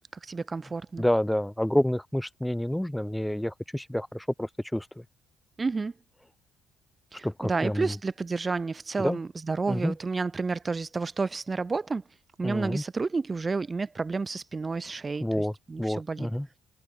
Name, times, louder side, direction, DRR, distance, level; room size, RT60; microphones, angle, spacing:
voice 1, 0.2-1.0 5.6-5.9 7.1-12.0 12.4-16.3, right 4 dB, 20° right, 1.8 m, -30 dB
voice 2, 1.0-5.0 7.2-8.0 9.0-9.2 9.7-10.0 12.4-12.8 15.2-16.5, left 1 dB, 5° left, 1.2 m, -28 dB
cardioid pair, 140°, 0 cm